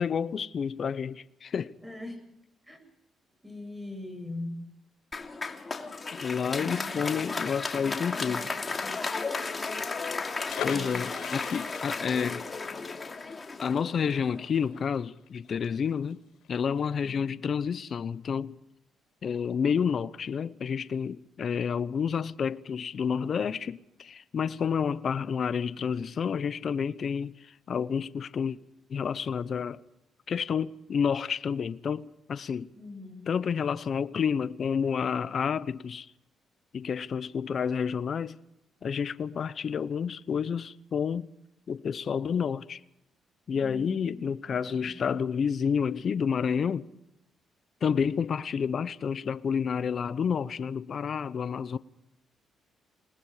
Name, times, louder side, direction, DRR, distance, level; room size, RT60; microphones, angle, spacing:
voice 1, 0.0-1.7 6.1-8.5 10.6-12.5 13.6-16.2 16.5-18.6 19.2-28.6 28.9-29.8 30.3-32.7 33.3-36.1 36.7-38.4 38.8-41.3 41.7-42.8 43.5-46.9 47.8-51.8, left 7 dB, 50° left, 0.8 m, -30 dB
voice 2, 1.8-2.3 2.7-2.9 3.4-4.6 6.6-7.2 7.8-9.1 10.7-11.1 32.7-33.3 43.5-44.9, left 2 dB, 5° right, 7.5 m, -42 dB
Applause, 5.1-14.5, left 4 dB, 30° left, 2.8 m, -34 dB
sound 1, 10.5-16.1 16.4-16.5 16.8-17.1, left 7 dB, 75° left, 5.2 m, -40 dB
28.0 x 20.0 x 4.9 m
cardioid pair, 90°, 0 cm